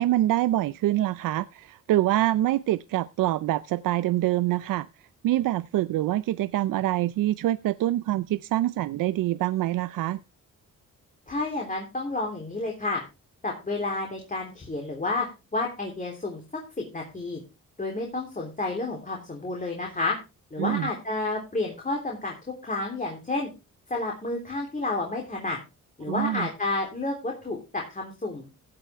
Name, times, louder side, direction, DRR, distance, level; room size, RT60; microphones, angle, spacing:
voice 1, 0.0-4.9 5.2-10.2 20.6-20.9 26.1-26.5, right 14 dB, 85° right, 0.5 m, -25 dB
voice 2, 11.3-13.0 13.4-15.3 15.5-16.4 16.8-17.4 17.8-20.2 20.5-23.5 23.9-25.6 26.0-28.5, left 2 dB, 25° left, 3.5 m, -30 dB
15.5 x 8.9 x 3.5 m
cardioid pair, 95°, 32 cm